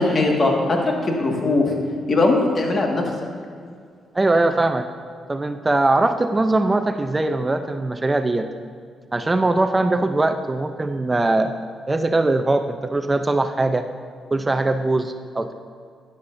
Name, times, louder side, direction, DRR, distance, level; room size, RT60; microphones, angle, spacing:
voice 1, 0.0-1.7 2.1-3.1, left 2 dB, 40° left, 0 dB, 1.7 m, -20 dB
voice 2, 4.1-4.9 5.3-8.5 9.1-11.5 11.9-13.9 14.3-15.5, right 2 dB, 20° right, 7 dB, 0.5 m, -21 dB
12.5 x 10.5 x 2.6 m, 2.1 s
cardioid pair, 85°, 0 cm